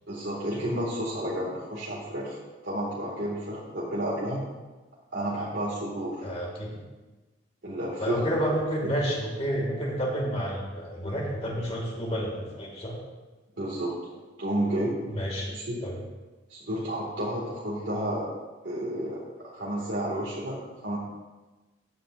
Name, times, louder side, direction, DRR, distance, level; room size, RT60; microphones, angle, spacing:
voice 1, 0.1-4.4 5.1-6.3 7.6-8.3 8.8-8.9 13.6-13.9 14.4-14.9 15.5-15.8 16.5-18.3 18.6-19.2 19.5-21.0, right 1 dB, 65° right, -6 dB, 2.2 m, -31 dB
voice 2, 6.2-6.8 8.0-13.0 15.1-15.5 15.8-16.0, equal, 35° left, -2 dB, 2.2 m, -30 dB
14.5 x 9.3 x 2.6 m, 1.2 s
head